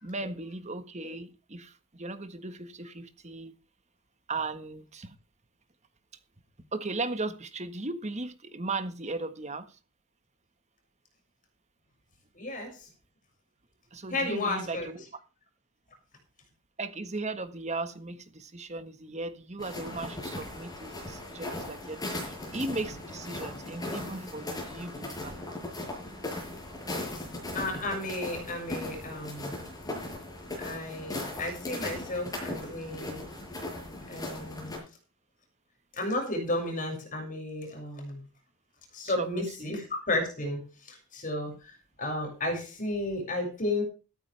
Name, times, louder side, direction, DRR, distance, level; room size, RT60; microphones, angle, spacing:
voice 1, 0.0-3.5 4.3-5.1 6.7-9.7 13.9-15.0 16.8-25.3 39.0-39.7, right 3 dB, 30° right, 1.5 m, -37 dB
voice 2, 12.3-12.7 14.1-14.9 27.5-29.6 30.6-33.2 34.1-34.8 35.9-38.2 38.9-40.6 40.9-41.7 42.0-43.8, left 1 dB, 35° left, 6.6 m, -33 dB
sound 1, 19.6-34.8, left 1 dB, 15° left, 7.5 m, -38 dB
15.0 x 13.5 x 3.5 m
head